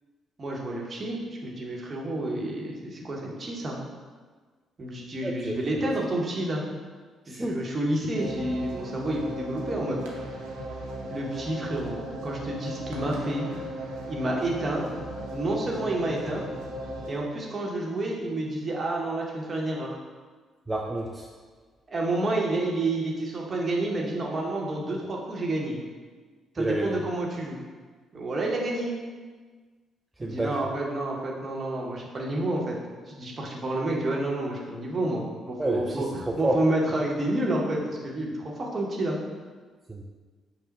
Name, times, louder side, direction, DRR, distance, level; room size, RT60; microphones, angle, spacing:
voice 1, 0.4-3.8 4.8-6.7 7.3-10.0 11.1-13.5 14.1-14.8 15.3-16.4 17.1-20.0 21.9-25.8 26.5-27.6 28.1-28.9 30.2-32.7 33.1-39.2, right 1 dB, 40° right, -2 dB, 1.0 m, -29 dB
voice 2, 5.2-5.6 7.3-7.6 20.7-21.3 26.6-27.0 30.2-30.6 35.6-36.6 39.9-40.0, right 1 dB, 15° right, -1 dB, 0.4 m, -29 dB
sound 1, 8.1-17.1, right 1 dB, 75° right, 0.7 m, -37 dB
5.6 x 2.1 x 4.1 m, 1.5 s
hypercardioid pair, 45°, 0 cm